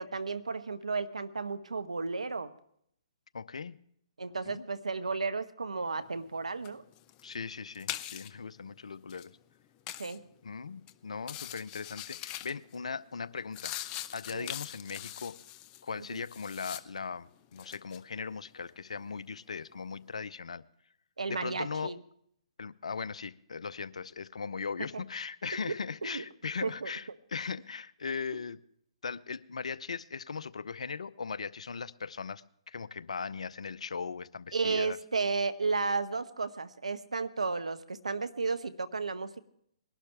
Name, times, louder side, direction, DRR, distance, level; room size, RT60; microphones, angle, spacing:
voice 1, 0.0-2.5 4.2-6.8 10.0-10.2 14.3-14.5 16.1-16.2 21.2-22.0 24.9-25.0 25.5-25.7 26.0-26.2 26.6-26.9 34.5-39.4, right 4 dB, 85° right, 12 dB, 1.0 m, -33 dB
voice 2, 3.3-3.8 4.5-4.7 7.2-9.3 10.4-13.7 14.1-15.4 15.8-20.6 21.3-22.0 22.6-28.6 29.0-35.0, left 5 dB, 75° left, 16 dB, 0.6 m, -39 dB
sound 1, 6.1-6.4 6.6-8.4 9.0-9.3 9.9-10.2 10.7-10.9 11.2-12.8 13.1-17.1 17.4-18.0, left 13 dB, 25° left, 0.6 m, -42 dB
20.5 x 12.0 x 3.4 m, 0.69 s
hypercardioid pair, 135°, 3 cm